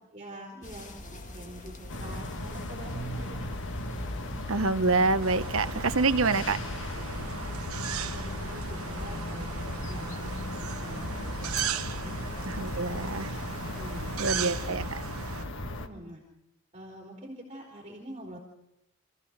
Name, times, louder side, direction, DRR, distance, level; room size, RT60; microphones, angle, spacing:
voice 1, 0.1-3.5 6.6-7.5 8.0-11.5 12.0-12.2 13.8-14.8 15.8-16.2 16.7-18.4, right 1 dB, 30° right, -2 dB, 3.9 m, -46 dB
sound 1, 0.6-14.7, left 1 dB, 35° left, 1.9 m, -45 dB
sound 2, 1.9-15.9, left 1 dB, 60° left, 1.6 m, -37 dB
voice 2, 4.5-6.6 12.5-13.3 14.2-15.0, right 3 dB, 70° right, 11 dB, 1.0 m, -26 dB
sound 3, 5.2-15.4, right 7 dB, 85° right, 1.2 m, -38 dB
27.0 x 15.5 x 6.6 m, 0.86 s
head